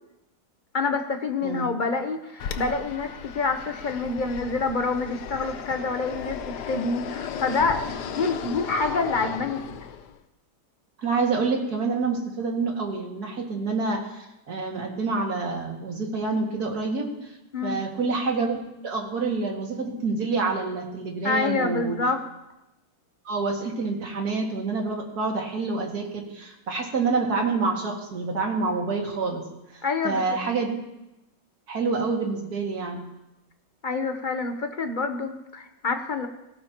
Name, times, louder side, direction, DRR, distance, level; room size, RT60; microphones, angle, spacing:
voice 1, 0.7-9.8 17.5-17.8 21.2-22.2 29.8-30.4 33.8-36.3, left 3 dB, 45° left, 6 dB, 0.6 m, -27 dB
Fixed-wing aircraft airplane, 2.4-10.2, left 8 dB, 65° left, 1.2 m, -36 dB
voice 2, 11.0-17.3 17.6-18.6 18.8-22.0 23.2-29.4 29.7-30.8 31.7-33.0, right 4 dB, 50° right, 0 dB, 2.6 m, -27 dB
18.5 x 16.5 x 3.0 m, 0.94 s
omnidirectional pair, 2.1 m